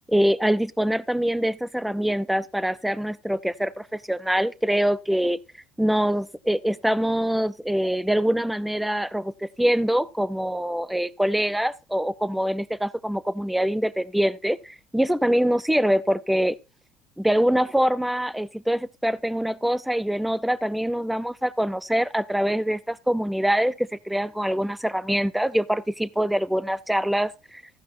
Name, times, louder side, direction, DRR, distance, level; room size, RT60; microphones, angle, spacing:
voice 1, 0.1-5.4 5.8-16.6 17.2-27.6, equal, ahead, 0.6 m, -24 dB
14.5 x 10.0 x 2.6 m
supercardioid pair, 95°, 3 cm